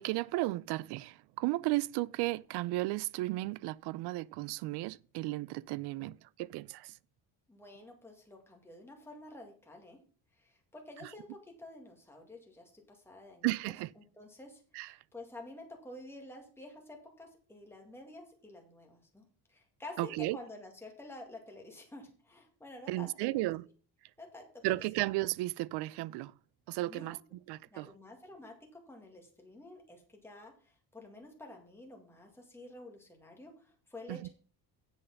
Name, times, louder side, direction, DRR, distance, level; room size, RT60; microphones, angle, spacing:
voice 1, 0.0-7.0 11.0-11.1 13.4-13.9 14.7-14.9 20.0-20.4 22.9-23.6 24.6-26.3 26.7-27.2 27.5-27.9 34.1-34.3, right 19 dB, 85° right, 0.5 m, -34 dB
voice 2, 7.5-10.0 10.4-23.1 23.4-23.5 24.2-24.8 26.9-27.2 27.7-34.3, left 2 dB, 5° left, 2.1 m, -50 dB
8.2 x 6.5 x 5.9 m
cardioid pair, 155°, 39 cm